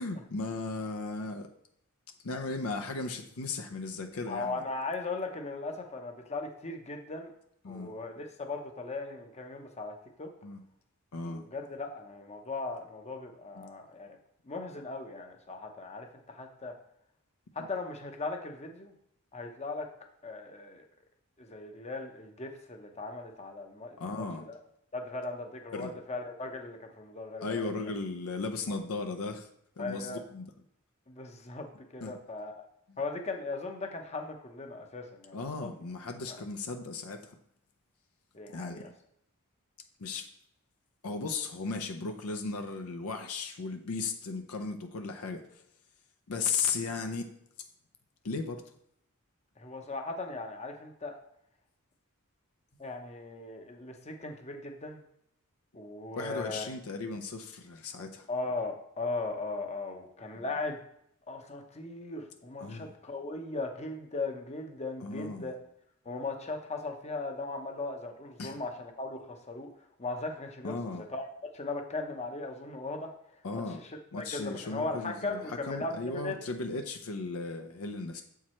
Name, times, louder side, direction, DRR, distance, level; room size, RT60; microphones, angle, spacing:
voice 1, 0.0-1.5 2.2-4.6 7.6-8.0 10.4-10.6 11.1-11.4 13.6-13.7 24.0-24.5 25.7-25.9 27.4-29.5 29.8-30.4 32.0-32.1 32.9-33.0 35.3-37.4 38.5-38.8 40.0-40.3 41.0-45.6 46.3-47.3 48.2-48.6 56.1-58.3 60.4-60.5 62.6-62.9 65.0-65.5 68.4-68.6 70.6-71.0 73.4-73.8 74.1-78.2, left 4 dB, 70° left, 5 dB, 0.6 m, -36 dB
voice 2, 4.3-7.3 7.7-10.3 11.2-14.2 14.4-16.8 17.5-18.9 19.3-19.9 20.2-20.9 21.4-24.6 24.9-27.9 28.7-28.8 29.8-30.2 31.1-32.7 33.0-35.7 36.3-36.4 38.3-38.9 49.6-51.2 52.8-55.0 55.7-56.7 58.3-60.8 61.3-65.6 66.0-69.7 70.0-71.3 71.5-73.1 73.5-76.4, left 3 dB, 30° left, 4 dB, 0.8 m, -38 dB
7.2 x 4.7 x 4.3 m, 0.73 s
head